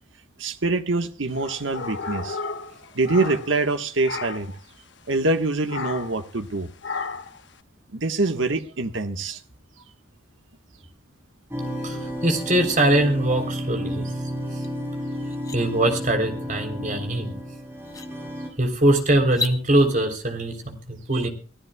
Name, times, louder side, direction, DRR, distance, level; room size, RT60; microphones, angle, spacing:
voice 1, 0.4-2.4 2.9-4.5 5.1-6.7 7.9-9.4 21.1-21.3, right 3 dB, 70° right, 7 dB, 1.4 m, -25 dB
sound 1, 1.3-3.7 4.0-4.6 5.7-6.2 6.8-7.4, left 4 dB, 60° left, 1.2 m, -33 dB
sound 2, 11.5-18.5, equal, 10° right, 7.3 m, -32 dB
voice 2, 11.8-14.1 15.5-17.3 18.6-21.3, right 1 dB, 40° right, 5 dB, 3.4 m, -22 dB
sound 3, 14.6-14.7 15.1-15.6 17.2-17.3 17.8-18.1 19.2-19.6, left 4 dB, 15° left, 1.2 m, -31 dB
24.5 x 15.0 x 2.3 m, 0.38 s
head